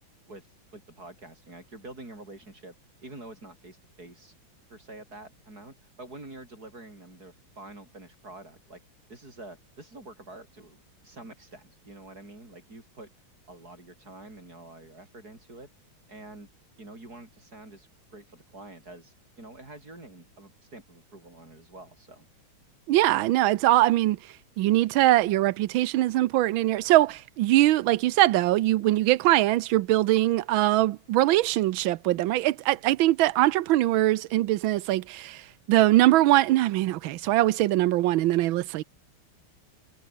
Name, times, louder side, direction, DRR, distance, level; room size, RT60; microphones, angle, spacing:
voice 1, 0.7-2.7 3.0-4.3 4.7-8.8 9.1-13.1 13.5-15.7 16.1-16.5 16.8-22.3, right 2 dB, 45° right, 7.9 m, -47 dB
voice 2, 22.9-24.2 24.6-35.4 35.7-38.8, right 16 dB, 80° right, 1.4 m, -22 dB
omnidirectional pair, 2.2 m